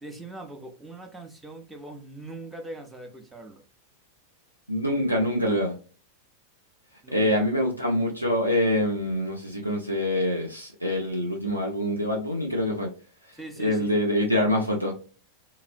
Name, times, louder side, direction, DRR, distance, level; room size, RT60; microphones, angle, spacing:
voice 1, 0.0-3.6 7.0-7.5 13.3-14.0, right 2 dB, 5° right, 0.6 m, -41 dB
voice 2, 4.7-5.8 7.1-12.9 13.6-14.9, left 1 dB, 90° right, 0.5 m, -25 dB
2.9 x 2.5 x 2.5 m
figure-of-eight pair, 90°, 0 cm